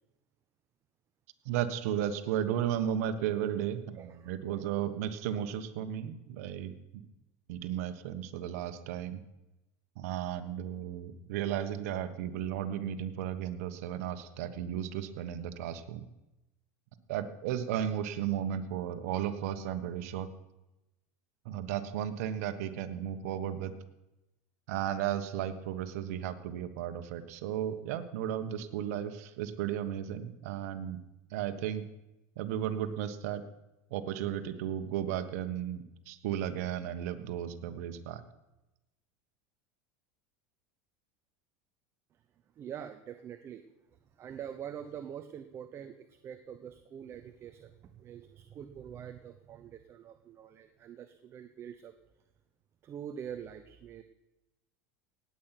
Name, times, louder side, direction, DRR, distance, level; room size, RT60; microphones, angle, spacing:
voice 1, 1.4-7.0 7.5-9.2 10.0-16.0 17.1-20.3 21.4-23.7 24.7-31.0 31.3-31.8 32.4-33.4 33.9-38.2, right 10 dB, 75° right, 9 dB, 1.3 m, -34 dB
voice 2, 4.0-4.6 42.6-43.6 44.2-51.9 52.8-54.0, right 9 dB, 30° right, 8 dB, 0.8 m, -45 dB
18.0 x 8.7 x 5.9 m, 0.95 s
supercardioid pair, 135°, 8 cm